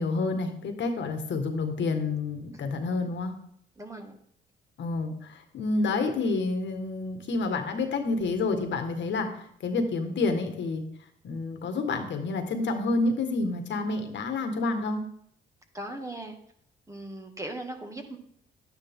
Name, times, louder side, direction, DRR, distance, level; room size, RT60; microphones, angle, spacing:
voice 1, 0.0-3.3 4.8-10.8 11.2-15.0, left 3 dB, 65° left, 6 dB, 1.8 m, -29 dB
voice 2, 3.8-4.2 15.7-16.4 16.9-18.2, right 1 dB, 15° right, 4 dB, 2.0 m, -38 dB
11.5 x 9.7 x 3.8 m, 0.67 s
cardioid pair, 90°, 20 cm